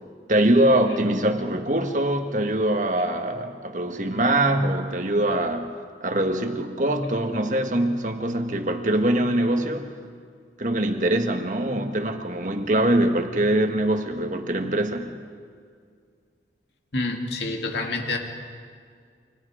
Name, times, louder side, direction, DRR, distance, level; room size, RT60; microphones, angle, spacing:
voice 1, 0.3-5.7 6.0-9.9 10.6-15.1, right 1 dB, 45° right, 5 dB, 1.6 m, -23 dB
voice 2, 16.9-18.2, left 2 dB, 70° left, 2 dB, 2.7 m, -27 dB
29.5 x 25.5 x 5.0 m, 2.1 s
head